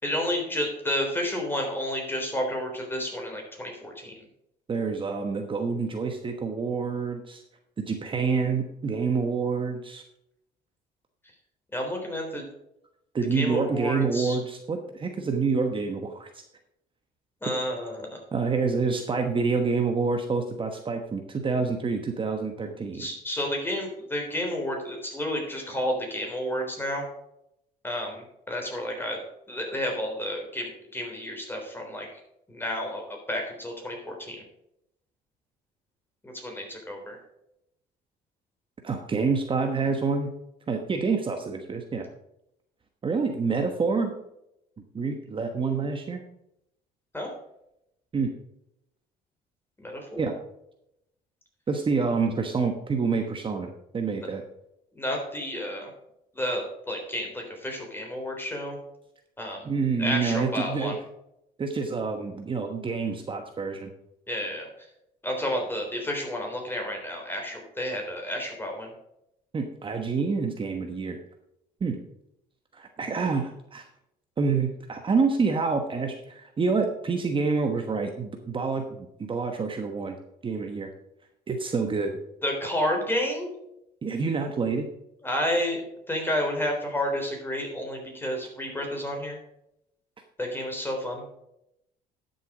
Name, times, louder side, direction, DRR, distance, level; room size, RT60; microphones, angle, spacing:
voice 1, 0.0-4.1 11.7-12.4 13.3-14.4 17.4-18.1 22.9-27.0 27.8-29.2 29.5-32.1 32.5-34.4 36.2-37.2 47.1-47.3 49.8-50.3 54.9-55.9 56.3-58.8 59.4-59.6 60.0-61.0 64.3-64.7 65.2-68.9 82.4-83.5 85.2-89.4 90.4-91.2, left 1 dB, 10° left, 1 dB, 3.7 m, -31 dB
voice 2, 4.7-7.4 7.8-10.0 13.1-16.3 18.3-23.1 38.8-40.3 40.7-42.1 43.0-44.1 44.9-46.2 48.1-48.3 50.2-50.3 51.7-54.4 59.6-60.9 61.6-63.9 69.5-71.2 71.8-72.0 72.7-73.9 74.4-80.2 80.4-80.9 81.5-82.1 84.0-84.9, right 4 dB, 30° right, 4 dB, 1.2 m, -27 dB
11.5 x 7.0 x 4.9 m, 0.81 s
cardioid pair, 110°, 17 cm